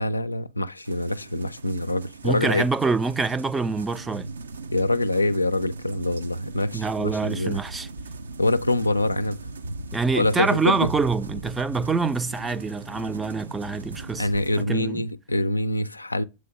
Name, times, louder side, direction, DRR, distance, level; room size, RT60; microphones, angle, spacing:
voice 1, 0.0-2.6 4.7-7.6 8.4-9.4 10.1-10.9 14.2-16.2, left 2 dB, 85° left, 0.4 m, -25 dB
sound 1, 0.8-14.7, right 2 dB, 70° right, 0.6 m, -39 dB
voice 2, 2.2-4.3 6.7-7.9 9.9-14.3 14.6-15.0, right 4 dB, 15° right, 0.4 m, -26 dB
7.7 x 3.2 x 5.7 m
figure-of-eight pair, 90°, 0 cm